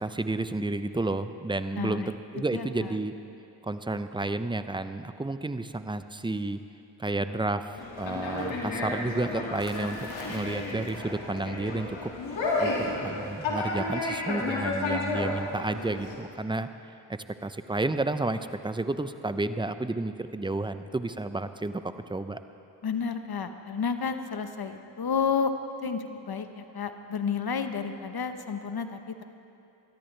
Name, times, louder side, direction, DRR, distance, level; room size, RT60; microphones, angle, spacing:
voice 1, 0.0-3.1 3.6-6.6 7.0-12.1 12.6-12.7 13.0-16.7 17.1-21.8 22.1-22.4, right 2 dB, 10° right, 11 dB, 0.7 m, -31 dB
voice 2, 1.8-2.1 2.5-2.9 22.8-25.5 25.8-29.2, left 6 dB, 55° left, 8 dB, 1.1 m, -31 dB
Conversation, 7.8-16.1, left 2 dB, 85° left, 2.3 m, -32 dB
21.0 x 13.5 x 3.4 m, 2.7 s
supercardioid pair, 45°, 44 cm